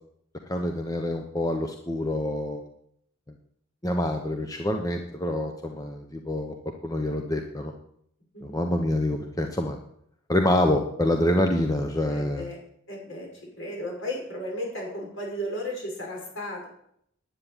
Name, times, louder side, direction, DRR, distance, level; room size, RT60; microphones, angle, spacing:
voice 1, 0.5-2.6 3.8-6.5 6.8-7.7 8.4-9.8 10.3-12.5, left 1 dB, 15° left, 4 dB, 0.9 m, -26 dB
voice 2, 12.1-12.6 12.9-13.3 13.6-16.7, left 1 dB, 60° left, 0 dB, 5.8 m, -34 dB
10.0 x 8.6 x 8.9 m, 0.70 s
head